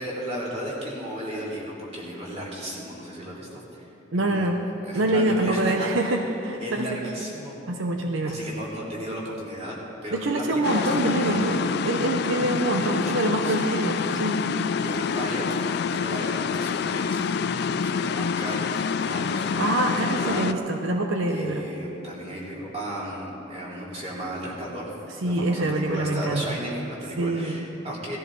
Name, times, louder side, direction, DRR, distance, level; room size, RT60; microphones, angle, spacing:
voice 1, 0.0-3.9 4.2-6.2 6.6-7.5 8.2-9.7 10.0-11.4 12.7-14.2 14.7-20.4 21.3-25.0 25.2-28.2, equal, 30° right, -5 dB, 3.0 m, -35 dB
voice 2, 4.1-4.6 4.9-7.0 7.7-8.4 10.1-11.6 11.8-14.4 19.6-21.6 25.2-26.6 27.2-27.7, right 1 dB, 85° right, 3 dB, 0.9 m, -25 dB
sound 1, 10.6-20.5, left 6 dB, 55° left, 0.3 m, -27 dB
18.5 x 13.0 x 4.0 m, 2.8 s
head